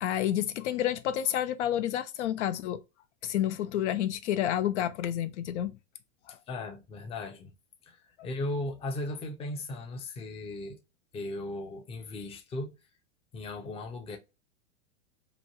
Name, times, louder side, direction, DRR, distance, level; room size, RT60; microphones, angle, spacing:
voice 1, 0.0-2.8 3.2-5.8 6.3-6.4, left 11 dB, 65° left, 0.5 m, -29 dB
voice 2, 6.3-7.5 7.8-10.8 11.1-12.7 13.3-14.2, left 2 dB, 15° left, 0.5 m, -37 dB
3.0 x 2.3 x 2.6 m
hypercardioid pair, 120°, 39 cm